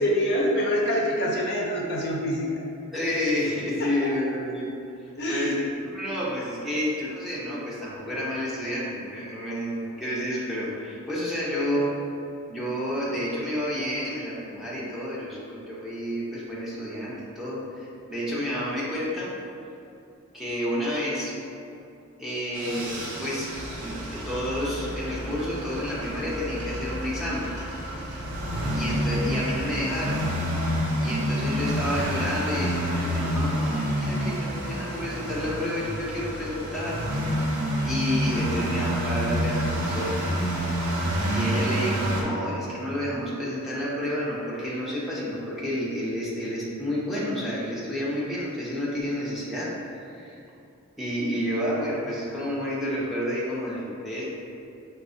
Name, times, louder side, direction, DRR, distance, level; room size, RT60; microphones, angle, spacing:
voice 1, 0.0-2.5 3.8-3.9 5.2-5.6 28.4-28.9, equal, 50° left, -2 dB, 0.4 m, -26 dB
voice 2, 2.9-4.7 5.0-12.0 12.5-19.3 20.3-21.3 22.2-23.5 23.8-27.5 28.7-30.2 31.0-37.0 37.8-40.1 41.3-50.4 51.0-54.2, equal, ahead, -8 dB, 0.6 m, -30 dB
sound 1, 22.5-42.2, equal, 90° right, 0.6 m, -29 dB
sound 2, 23.5-30.0, equal, 25° left, 0.9 m, -37 dB
5.8 x 2.1 x 2.5 m, 2.6 s
head